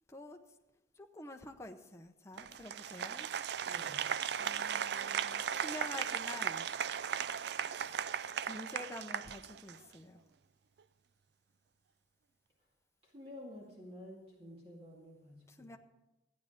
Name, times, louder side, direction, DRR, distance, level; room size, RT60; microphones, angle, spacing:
voice 1, 0.1-0.4 1.0-3.3 4.4-6.7 7.8-8.0 8.4-10.2 15.5-15.8, left 1 dB, 15° left, 4 dB, 0.7 m, -48 dB
Applause, 2.4-9.9, right 8 dB, 60° right, 0.3 m, -37 dB
voice 2, 3.7-4.0 13.1-15.7, left 1 dB, 30° right, -3 dB, 2.1 m, -51 dB
14.0 x 9.6 x 5.1 m, 1.0 s
head